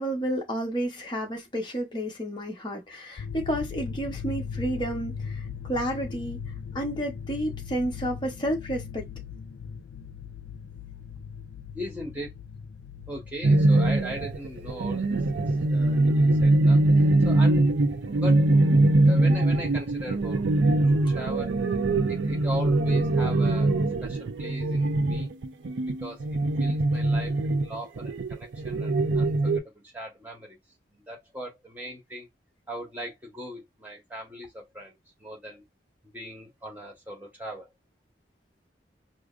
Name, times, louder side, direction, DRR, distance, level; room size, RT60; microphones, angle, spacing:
voice 1, 0.0-6.4 6.7-9.1, right 1 dB, 25° left, 0.9 m, -31 dB
sound 1, 3.2-20.2 20.5-20.8, left 7 dB, 65° left, 0.3 m, -40 dB
voice 2, 11.7-12.3 13.1-16.8 17.2-17.8 18.2-18.5 19.1-21.6 22.1-25.3 25.8-26.3 26.6-30.6 30.9-32.3 32.7-35.6 36.0-37.7, equal, 10° right, 1.2 m, -39 dB
sound 2, 13.4-29.6, right 2 dB, 85° right, 0.5 m, -22 dB
4.8 x 2.0 x 2.4 m
head